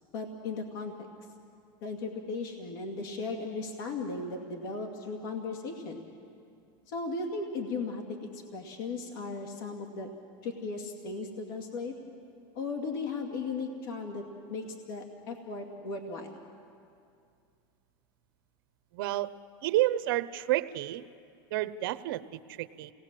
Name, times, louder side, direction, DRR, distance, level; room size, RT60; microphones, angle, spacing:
voice 1, 0.1-1.1 1.8-6.0 6.9-8.2 8.5-10.1 10.4-11.9 12.5-14.2 14.5-16.4, left 3 dB, 70° left, 3 dB, 2.3 m, -36 dB
voice 2, 18.9-19.3 19.6-21.0 21.5-22.9, right 15 dB, 70° right, 13 dB, 0.8 m, -30 dB
28.0 x 19.0 x 7.6 m, 2.4 s
supercardioid pair, 145°, 12 cm